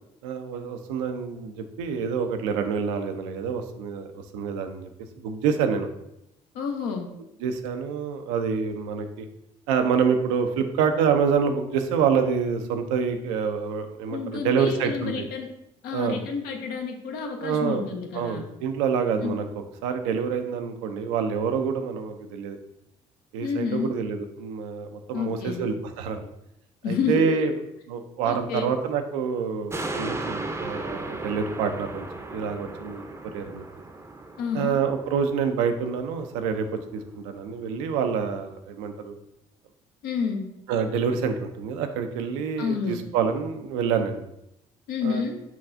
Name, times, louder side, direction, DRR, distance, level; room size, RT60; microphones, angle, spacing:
voice 1, 0.2-4.9 5.2-5.9 7.4-9.3 9.7-15.3 15.9-16.2 17.4-17.8 18.1-19.4 19.8-22.6 23.3-26.3 26.9-27.5 27.9-33.6 34.5-36.7 36.9-39.1 40.7-44.2 45.0-45.2, right 6 dB, 85° right, 7 dB, 0.4 m, -27 dB
voice 2, 6.5-7.1 14.1-15.5 15.8-18.5 19.2-19.4 23.4-23.9 25.1-25.7 26.8-27.5 28.2-28.7 34.4-34.8 40.0-40.5 42.6-43.0 44.9-45.4, left 5 dB, 75° left, 4 dB, 0.6 m, -29 dB
sound 1, 29.7-36.4 36.8-36.9, right 2 dB, 15° right, 0.5 m, -36 dB
5.6 x 2.3 x 2.5 m, 0.83 s
hypercardioid pair, 55°, 16 cm